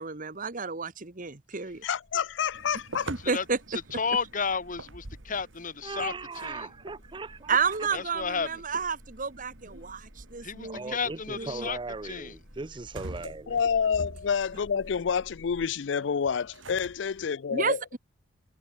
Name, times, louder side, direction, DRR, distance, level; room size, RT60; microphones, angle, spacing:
voice 1, 0.0-1.8 3.1-3.8 7.5-11.7 17.5-18.0, right 5 dB, 45° right, 1.4 m, -31 dB
sound 1, 1.7-15.7, equal, ahead, 2.6 m, -55 dB
voice 2, 1.8-3.1 13.5-18.0, left 6 dB, 65° left, 0.4 m, -28 dB
sound 2, 2.5-17.3, right 2 dB, 80° right, 2.3 m, -47 dB
voice 3, 4.0-6.1 6.4-6.7 7.9-8.5 10.4-11.8 12.0-12.3, left 5 dB, 45° left, 1.4 m, -32 dB
voice 4, 5.8-7.6 10.6-13.6, right 3 dB, 25° right, 0.6 m, -38 dB
head